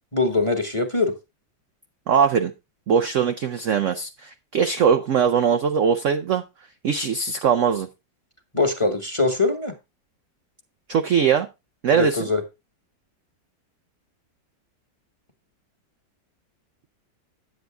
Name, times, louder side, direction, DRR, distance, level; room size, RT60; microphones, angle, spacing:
voice 1, 0.1-1.1 8.5-9.7 11.9-12.4, left 3 dB, 20° left, 1.0 m, -22 dB
voice 2, 2.1-2.5 2.9-6.4 6.8-7.9 10.9-11.5 11.8-12.3, right 7 dB, 80° right, 0.6 m, -21 dB
9.3 x 7.9 x 3.4 m
omnidirectional pair, 2.0 m